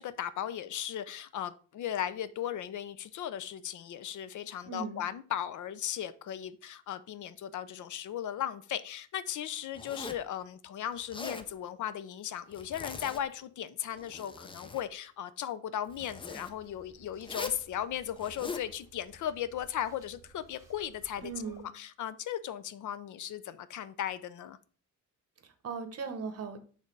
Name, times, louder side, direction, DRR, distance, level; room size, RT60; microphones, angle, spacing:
voice 1, 0.0-21.3 21.6-24.6, left 10 dB, 75° left, 0.5 m, -37 dB
voice 2, 4.7-5.0 21.2-21.7 25.4-26.6, right 5 dB, 50° right, 1.0 m, -38 dB
Zipper (clothing), 9.7-10.3 11.0-11.5 12.5-13.3 13.9-14.9 15.9-16.5 17.2-17.6 18.2-18.7, left 4 dB, 15° left, 0.4 m, -41 dB
sound 1, 15.9-21.6, right 3 dB, 10° right, 1.7 m, -59 dB
6.4 x 3.4 x 5.3 m
wide cardioid pair, 155°, 31 cm